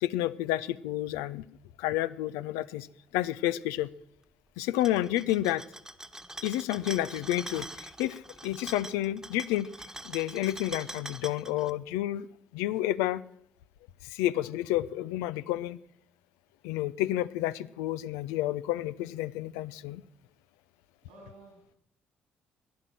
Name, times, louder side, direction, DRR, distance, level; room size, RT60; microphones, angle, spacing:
voice 1, 0.0-1.4 1.8-2.9 3.1-3.9 4.6-5.6 6.4-9.7 10.0-12.3 12.5-13.2 14.0-15.8 16.6-20.0, left 14 dB, 80° left, 16 dB, 0.5 m, -30 dB
sound 1, 4.7-11.7, right 1 dB, 10° right, 1.3 m, -44 dB
voice 2, 20.7-21.8, right 2 dB, 85° right, 1 dB, 3.5 m, -54 dB
15.5 x 10.5 x 7.6 m, 0.74 s
hypercardioid pair, 45°, 5 cm